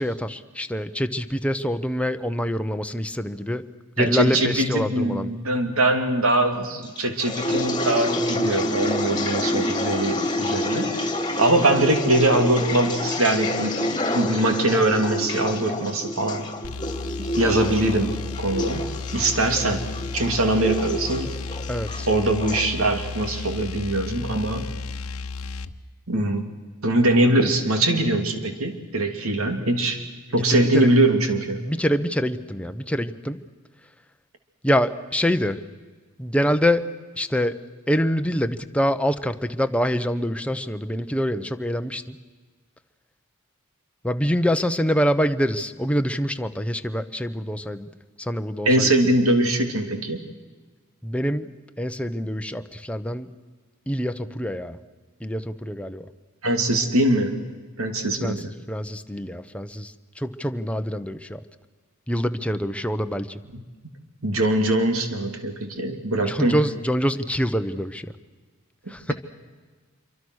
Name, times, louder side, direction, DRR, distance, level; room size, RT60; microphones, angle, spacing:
voice 1, 0.0-3.6 4.0-5.3 21.7-22.1 30.5-30.9 31.6-33.4 34.6-35.6 36.2-36.9 37.2-37.6 37.9-42.2 44.0-47.9 48.2-48.9 51.0-51.5 51.8-53.3 53.9-54.8 55.2-56.1 58.2-58.3 58.7-59.9 60.2-61.4 62.1-63.4 66.2-68.1 68.9-69.1, equal, 5° left, 8 dB, 0.9 m, -25 dB
voice 2, 4.0-10.9 11.4-13.8 14.1-16.5 17.2-18.1 18.4-18.8 19.1-19.8 20.1-21.3 22.1-24.7 26.1-26.5 26.8-30.0 30.3-31.6 48.6-50.2 56.4-57.3 57.8-58.5 63.5-63.6 64.2-66.6, right 1 dB, 75° right, 6 dB, 2.9 m, -22 dB
sound 1, 7.0-22.7, left 1 dB, 20° left, 2.2 m, -28 dB
sound 2, 16.6-25.7, left 4 dB, 85° left, 1.0 m, -33 dB
27.0 x 24.0 x 6.4 m, 1.4 s
head